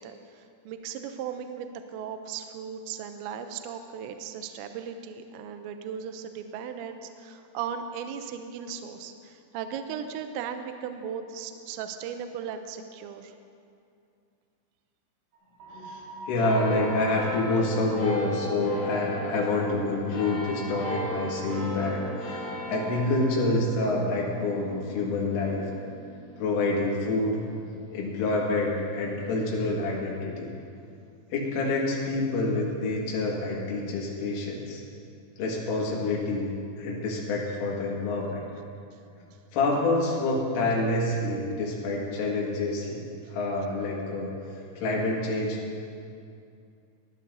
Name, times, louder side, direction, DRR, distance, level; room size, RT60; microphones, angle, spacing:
voice 1, 0.0-1.7 1.9-13.3, right 7 dB, 85° right, 7 dB, 2.7 m, -37 dB
sound 1, 15.3-21.6, right 1 dB, 60° right, 3.2 m, -44 dB
voice 2, 15.7-22.4 22.7-25.6 26.4-27.4 27.9-30.5 31.3-34.8 35.4-38.4 39.5-43.0 43.3-44.3 44.8-45.6, left 2 dB, 90° left, -4 dB, 4.4 m, -27 dB
sound 2, 16.4-29.2 29.9-30.0, equal, 45° left, 3.4 m, -38 dB
21.0 x 12.5 x 2.7 m, 2.5 s
omnidirectional pair, 5.6 m